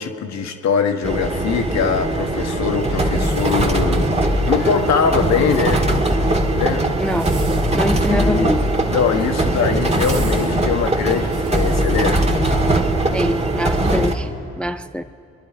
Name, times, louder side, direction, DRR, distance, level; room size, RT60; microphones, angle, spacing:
voice 1, 0.0-4.1 4.5-5.9 6.6-6.8 8.1-8.6 8.9-12.2, left 6 dB, 65° left, 1.2 m, -22 dB
sound 1, 1.0-14.1, right 1 dB, 20° right, 1.6 m, -20 dB
sound 2, 2.3-10.9, left 9 dB, 80° left, 0.7 m, -37 dB
sound 3, 3.2-4.2 5.3-6.0 7.0-7.8 8.9-9.3 9.9-12.0 12.6-12.7, right 4 dB, 80° right, 2.4 m, -40 dB
voice 2, 7.0-7.4 7.7-8.7 13.1-15.0, equal, 5° left, 0.4 m, -24 dB
25.5 x 11.0 x 4.8 m
supercardioid pair, 50°, 30 cm